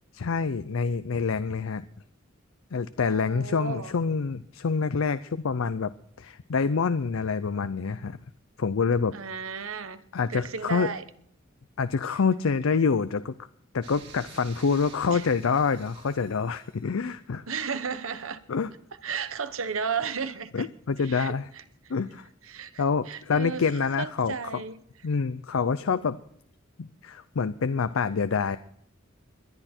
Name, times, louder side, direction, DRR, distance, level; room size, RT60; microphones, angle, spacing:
voice 1, 0.1-1.8 2.7-5.9 6.2-8.2 8.6-9.2 10.1-10.9 11.8-13.3 13.7-17.4 18.5-18.7 20.5-21.5 21.9-22.3 22.8-24.3 25.0-26.2 26.8-28.6, left 5 dB, 85° left, 13 dB, 0.5 m, -26 dB
voice 2, 3.0-4.0 9.1-10.0 10.3-11.1 14.7-14.8 15.1-15.3 17.5-18.4 19.0-20.7 21.0-21.9 22.4-24.8, right 5 dB, 90° right, 13 dB, 1.0 m, -34 dB
sound 1, 13.8-17.0, right 4 dB, 55° right, 4.1 m, -49 dB
22.0 x 11.0 x 4.4 m, 0.67 s
head